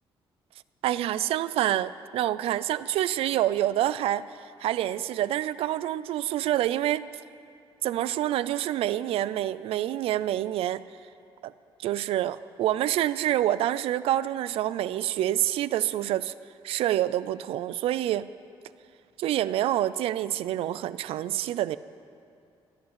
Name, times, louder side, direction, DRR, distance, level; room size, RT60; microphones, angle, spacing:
voice 1, 0.8-4.2 4.6-7.0 7.8-10.8 11.4-11.5 11.8-16.3 16.6-18.3 19.2-21.8, right 13 dB, 80° right, 16 dB, 0.5 m, -27 dB
16.5 x 10.5 x 7.5 m, 2.4 s
cardioid pair, 110°, 10 cm